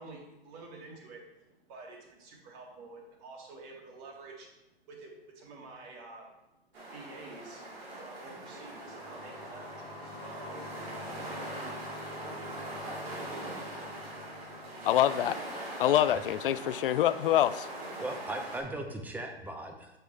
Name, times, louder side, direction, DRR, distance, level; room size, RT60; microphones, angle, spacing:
voice 1, 0.0-4.6 4.9-6.5 6.9-11.9, right 3 dB, 40° right, 0 dB, 2.0 m, -49 dB
sound 1, 6.7-18.6, right 1 dB, 70° right, 2.6 m, -42 dB
sound 2, 8.2-15.7, left 3 dB, 30° left, 0.9 m, -49 dB
voice 2, 14.8-15.4 15.8-17.7, left 12 dB, 60° left, 16 dB, 0.4 m, -25 dB
voice 3, 18.0-19.9, right 1 dB, 5° right, 4 dB, 0.6 m, -38 dB
6.7 x 6.0 x 3.4 m, 0.90 s
hypercardioid pair, 120°, 31 cm